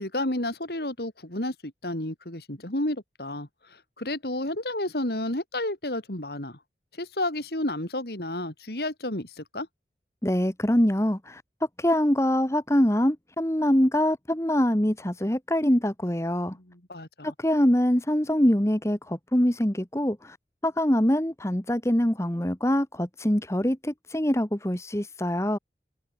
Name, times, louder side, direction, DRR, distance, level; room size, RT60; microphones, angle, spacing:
voice 1, 0.0-6.6 7.0-9.7 16.6-17.3, left 1 dB, 60° left, 3.9 m, -31 dB
voice 2, 10.2-11.4 11.8-16.6 17.2-20.4 20.6-25.6, equal, 15° left, 1.4 m, -24 dB
head